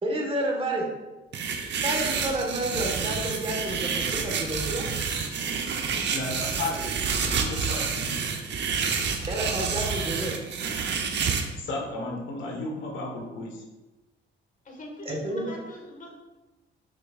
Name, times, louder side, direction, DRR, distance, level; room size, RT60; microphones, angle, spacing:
voice 1, 0.0-0.9 1.8-4.8 9.3-10.3 15.0-15.5, right 1 dB, 30° right, 0 dB, 1.5 m, -30 dB
sound 1, 1.3-11.4, right 6 dB, 60° right, 0.8 m, -29 dB
voice 2, 6.1-6.8 7.2-8.1 11.6-13.6, left 2 dB, 75° left, 0 dB, 1.3 m, -34 dB
voice 3, 14.6-16.1, left 1 dB, 40° left, 1 dB, 1.7 m, -42 dB
6.4 x 6.3 x 2.5 m, 1.1 s
cardioid pair, 90°, 20 cm